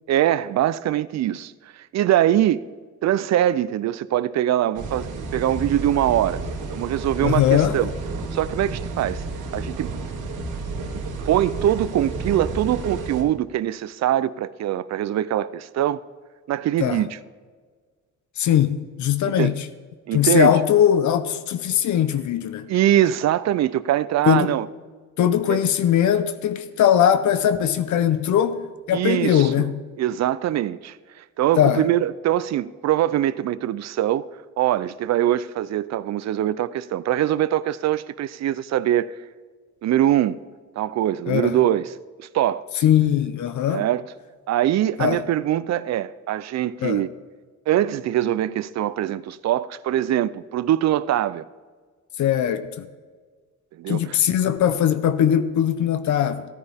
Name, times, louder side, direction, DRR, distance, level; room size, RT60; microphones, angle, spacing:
voice 1, 0.1-2.6 3.0-6.4 6.7-7.9 8.3-9.2 9.5-9.9 11.3-16.0 16.5-17.1 19.4-19.5 20.1-20.5 22.7-24.7 25.5-25.6 28.9-29.7 30.0-31.0 31.4-34.2 34.6-39.1 39.8-40.4 40.8-41.9 42.2-42.8 43.7-44.0 44.5-47.1 47.7-51.4 53.8-54.2, right 12 dB, 60° right, 0.5 m, -22 dB
sound 1, 4.7-13.2, right 3 dB, 85° right, 1.6 m, -31 dB
voice 2, 7.2-7.8 16.8-17.0 18.4-19.7 20.1-22.7 24.3-24.5 25.2-29.7 31.6-31.8 41.3-41.6 42.8-43.8 45.0-45.2 46.8-47.0 52.2-52.9 53.9-56.4, left 10 dB, 70° left, 0.8 m, -20 dB
15.0 x 9.7 x 3.5 m
cardioid pair, 90°, 30 cm